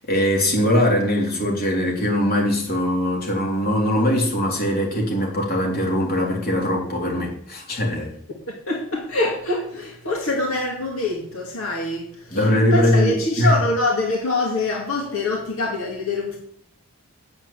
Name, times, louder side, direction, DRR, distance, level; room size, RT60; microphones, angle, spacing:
voice 1, 0.1-8.1 12.3-13.6, left 1 dB, 45° left, -1 dB, 3.5 m, -21 dB
voice 2, 8.5-12.4 12.7-16.4, left 2 dB, 75° left, -1 dB, 2.3 m, -25 dB
8.5 x 7.6 x 8.5 m, 0.65 s
head